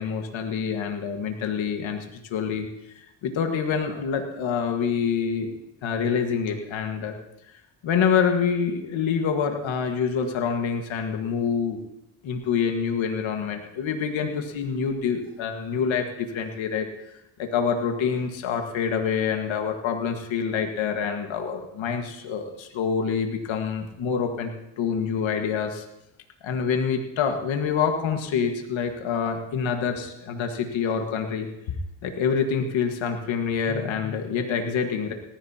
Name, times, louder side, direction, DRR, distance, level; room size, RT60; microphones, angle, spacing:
voice 1, 0.0-2.1 2.3-2.7 3.0-5.5 5.8-7.1 7.8-11.8 12.2-17.1 17.4-25.8 26.4-31.5 32.0-35.1, left 6 dB, 80° left, 4 dB, 1.7 m, -26 dB
19.0 x 14.0 x 2.9 m, 0.86 s
cardioid pair, 85°, 46 cm